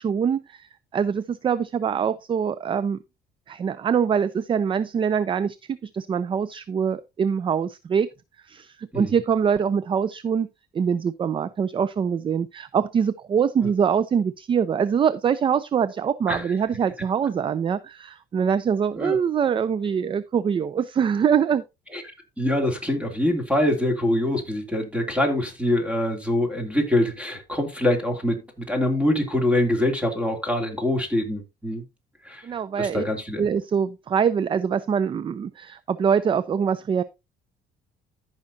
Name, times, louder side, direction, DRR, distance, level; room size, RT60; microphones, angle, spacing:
voice 1, 0.0-3.0 3.5-8.1 8.5-10.5 10.7-21.6 32.4-33.0 33.4-37.0, right 7 dB, 30° right, 0.4 m, -24 dB
voice 2, 22.4-31.8 32.2-32.4 32.8-33.4, left 1 dB, 5° right, 2.8 m, -24 dB
14.0 x 5.8 x 2.7 m
cardioid pair, 110°, 17 cm